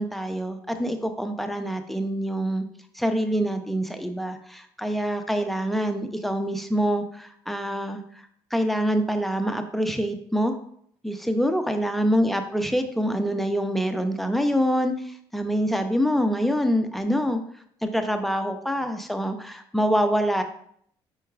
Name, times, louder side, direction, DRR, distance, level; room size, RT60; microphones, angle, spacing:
voice 1, 0.0-2.6 2.9-8.0 8.5-10.5 11.0-17.4 17.8-20.4, equal, ahead, 6 dB, 0.5 m, -25 dB
4.5 x 4.5 x 2.4 m, 0.66 s
supercardioid pair, 75°, 11 cm